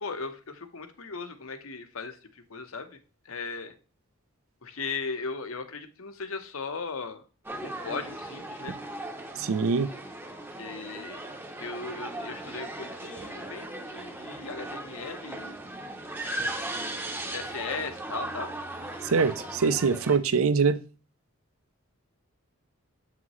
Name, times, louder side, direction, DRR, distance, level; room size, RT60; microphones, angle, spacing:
voice 1, 0.0-3.0 3.2-3.7 4.6-7.2 7.6-8.7 10.6-11.2 11.6-15.6 16.7-18.5, left 4 dB, 80° left, 0.9 m, -37 dB
sound 1, 7.4-20.2, right 1 dB, 10° right, 0.7 m, -37 dB
voice 2, 9.4-9.9 19.0-20.8, right 5 dB, 80° right, 0.5 m, -24 dB
7.5 x 5.9 x 3.1 m
head